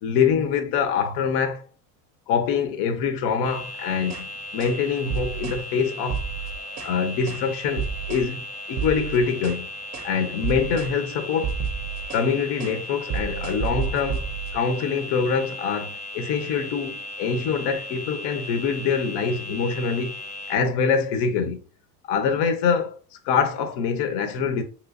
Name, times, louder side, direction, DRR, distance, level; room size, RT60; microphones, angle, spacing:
voice 1, 0.0-1.6 2.3-6.3 6.8-9.7 10.0-11.5 12.1-14.3 14.5-20.1 20.5-21.6 22.1-23.0 23.2-24.6, left 6 dB, 85° left, 0.7 m, -24 dB
sound 1, 3.4-20.6, left 1 dB, 20° left, 0.5 m, -37 dB
sound 2, 4.0-4.3 4.6-4.8 5.1-5.6 6.0-7.0 7.3-7.5 7.8-8.3 8.7-9.6 9.9-10.2 10.4-11.0 11.3-12.3 12.6-12.8 13.1-14.6, right 7 dB, 45° right, 0.4 m, -31 dB
3.3 x 3.0 x 2.4 m
cardioid pair, 155°, 39 cm